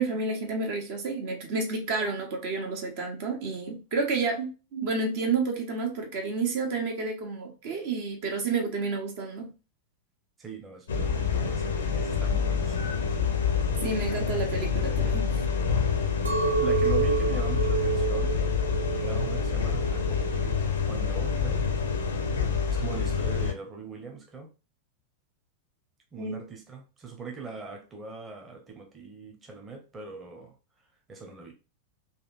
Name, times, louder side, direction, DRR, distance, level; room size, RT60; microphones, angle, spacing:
voice 1, 0.0-9.5 13.8-15.3 26.2-26.4, right 4 dB, 50° right, 1.0 m, -30 dB
voice 2, 10.4-13.0 16.5-18.4 19.0-21.7 22.7-24.5 26.1-30.5 31.1-31.5, right 5 dB, 20° right, 1.0 m, -41 dB
sound 1, 10.9-23.5, left 6 dB, 65° left, 0.6 m, -27 dB
Chink clink, 16.3-20.6 21.0-21.6, right 5 dB, 75° right, 0.6 m, -29 dB
4.1 x 2.5 x 2.5 m
figure-of-eight pair, 90°, 0 cm